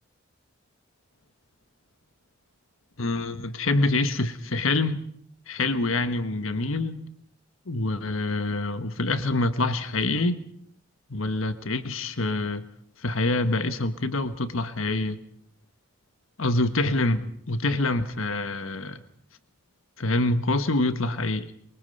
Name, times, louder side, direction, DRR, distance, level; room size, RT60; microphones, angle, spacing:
voice 1, 3.0-5.0 5.5-7.1 7.7-10.4 11.1-12.6 13.0-15.2 16.4-19.0 20.0-21.5, left 2 dB, 75° left, 10 dB, 1.4 m, -26 dB
24.0 x 23.5 x 5.4 m, 0.64 s
head